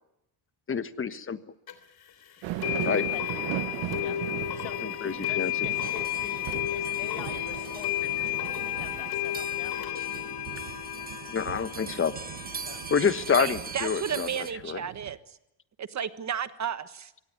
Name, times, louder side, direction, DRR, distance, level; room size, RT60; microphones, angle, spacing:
voice 1, 0.7-1.4 2.8-3.1 4.8-5.5 11.3-12.1 12.9-14.8, left 6 dB, 30° left, 12 dB, 1.3 m, -28 dB
sound 1, 1.7-1.8 2.6-14.2, left 14 dB, 55° left, 3.3 m, -33 dB
sound 2, 2.4-15.2, right 14 dB, 85° right, 1.4 m, -39 dB
voice 2, 4.6-9.8 12.6-12.8, left 12 dB, 85° left, 9 dB, 1.9 m, -45 dB
sound 3, 5.8-14.5, right 6 dB, 20° right, 0.8 m, -42 dB
voice 3, 13.4-15.4 15.8-17.1, right 8 dB, 40° right, 12 dB, 1.4 m, -33 dB
24.0 x 19.0 x 9.6 m, 0.86 s
cardioid pair, 115°, 44 cm